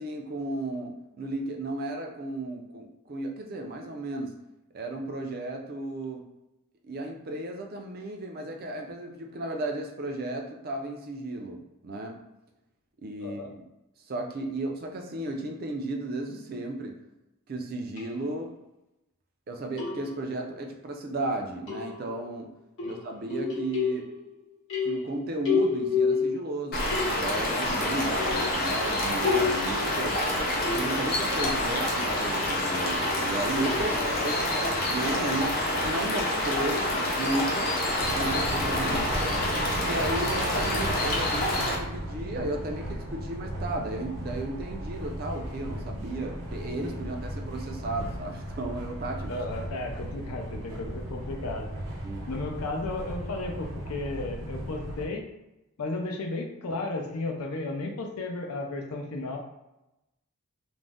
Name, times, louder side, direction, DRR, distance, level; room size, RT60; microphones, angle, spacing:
voice 1, 0.0-4.3 4.7-6.2 6.8-12.2 13.0-13.5 14.1-17.0 17.5-18.5 19.5-22.5 22.9-24.1 24.8-30.2 30.6-34.0 34.2-34.3 34.9-35.5 35.7-37.7 38.1-39.4 39.8-49.3 52.0-52.3, right 2 dB, 45° right, 2 dB, 0.4 m, -34 dB
voice 2, 13.2-13.5 22.8-22.9 33.9-34.3 38.8-39.1 49.3-51.7 52.3-55.3 55.8-59.4, left 2 dB, 90° left, 2 dB, 0.5 m, -34 dB
sound 1, 18.0-18.1 19.8-20.4 21.7-22.3 22.8-24.3 24.7-26.6 26.9-27.5 28.2-31.1 31.7-32.3 32.9-34.0, left 5 dB, 60° left, 0.9 m, -31 dB
sound 2, 26.7-41.7, left 1 dB, 45° left, 0.5 m, -27 dB
sound 3, 38.0-55.1, right 1 dB, 85° right, 0.7 m, -36 dB
2.5 x 2.0 x 3.4 m, 0.93 s
head